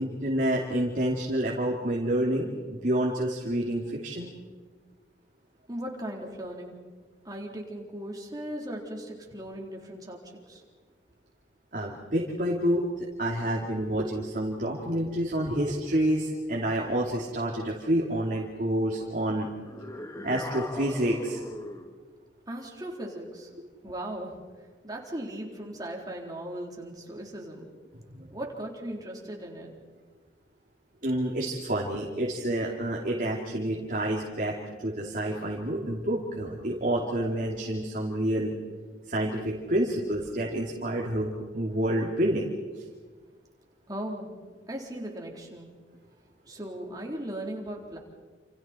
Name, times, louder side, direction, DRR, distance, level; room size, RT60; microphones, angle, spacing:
voice 1, 0.0-4.3 11.7-19.5 20.2-21.4 28.1-28.3 31.0-38.5 39.1-42.5, right 1 dB, 50° right, -2 dB, 2.9 m, -28 dB
voice 2, 5.7-6.8 7.2-10.2 10.5-10.6 22.5-23.5 23.8-24.4 24.8-27.7 28.3-29.7 43.9-44.3 44.7-45.7 46.5-48.0, right 1 dB, 20° right, -1 dB, 4.0 m, -38 dB
sound 1, 19.7-22.0, left 1 dB, 20° left, 1.7 m, -39 dB
29.0 x 28.5 x 4.6 m, 1.5 s
head